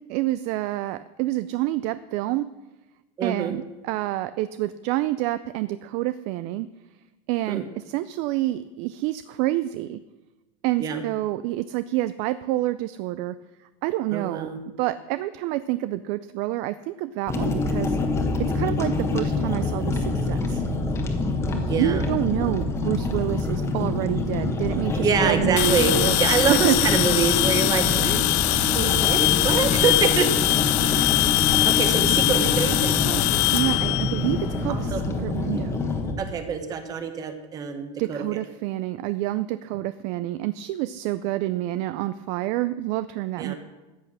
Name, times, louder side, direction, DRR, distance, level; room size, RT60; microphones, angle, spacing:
voice 1, 0.0-2.5 3.2-6.7 7.3-10.0 10.6-13.4 13.8-14.5 14.8-18.0 18.4-20.6 21.5-26.2 26.5-26.8 33.5-35.8 38.0-43.5, right 16 dB, 45° right, 14 dB, 0.4 m, -28 dB
voice 2, 3.2-3.6 7.5-7.6 10.8-11.0 14.1-14.6 21.7-22.1 25.0-30.3 30.8-31.2 31.6-33.2 34.7-35.0 36.2-38.4 43.4-43.5, right 6 dB, 20° right, 8 dB, 1.2 m, -26 dB
sound 1, 17.3-36.1, left 3 dB, 15° left, 1.3 m, -26 dB
sound 2, 25.6-34.8, left 22 dB, 50° left, 0.4 m, -22 dB
14.0 x 8.0 x 6.2 m, 1.1 s
supercardioid pair, 170°, 16 cm